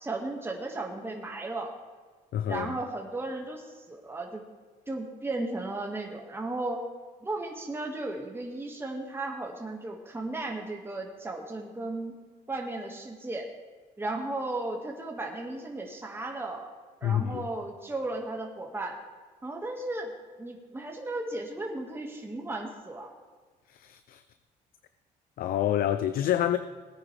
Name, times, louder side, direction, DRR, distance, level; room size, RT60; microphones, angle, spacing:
voice 1, 0.0-1.7 2.5-4.4 4.9-6.8 7.2-12.2 12.5-13.5 14.0-16.7 17.0-19.0 19.4-20.1 20.4-23.1, right 2 dB, 15° right, 1.8 m, -35 dB
voice 2, 2.3-2.8 17.0-17.5 23.7-24.2 25.4-26.6, left 11 dB, 65° left, 0.6 m, -27 dB
18.0 x 9.7 x 3.4 m
supercardioid pair, 75°, 16 cm